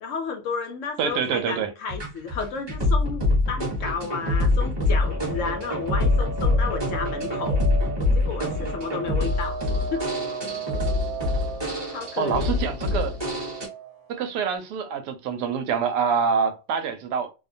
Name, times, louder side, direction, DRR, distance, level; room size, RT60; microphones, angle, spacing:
voice 1, 0.0-3.2 3.5-7.6 8.1-9.6 9.9-10.0 11.9-12.6, left 5 dB, 70° left, 0.7 m, -32 dB
voice 2, 1.0-1.7 12.2-13.2 14.1-17.3, right 6 dB, 85° right, 1.1 m, -26 dB
sound 1, 1.9-13.7, left 2 dB, 20° right, 0.9 m, -25 dB
sound 2, 5.0-14.3, right 5 dB, 55° right, 1.0 m, -36 dB
2.7 x 2.1 x 2.6 m
omnidirectional pair, 1.7 m